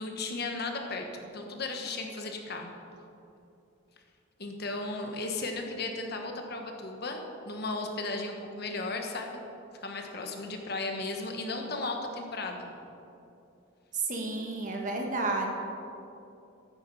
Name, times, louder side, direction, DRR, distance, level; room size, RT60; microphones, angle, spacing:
voice 1, 0.0-2.7 4.4-9.4 9.8-12.7, left 3 dB, 55° left, 3 dB, 1.3 m, -35 dB
voice 2, 14.1-15.5, right 2 dB, 40° right, 1 dB, 1.7 m, -31 dB
14.0 x 8.8 x 5.6 m, 2.7 s
head